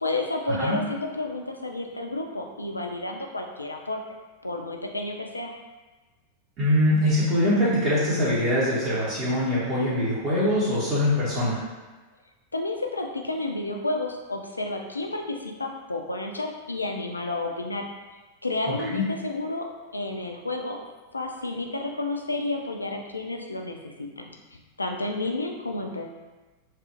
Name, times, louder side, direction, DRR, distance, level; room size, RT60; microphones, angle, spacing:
voice 1, 0.0-4.0 4.4-5.5 12.5-17.9 18.4-20.8 21.1-26.2, left 2 dB, 80° left, 3 dB, 0.3 m, -31 dB
voice 2, 6.6-11.6 18.7-19.1, left 1 dB, 35° right, -10 dB, 1.0 m, -23 dB
3.2 x 2.4 x 2.8 m, 1.2 s
figure-of-eight pair, 90°, 0 cm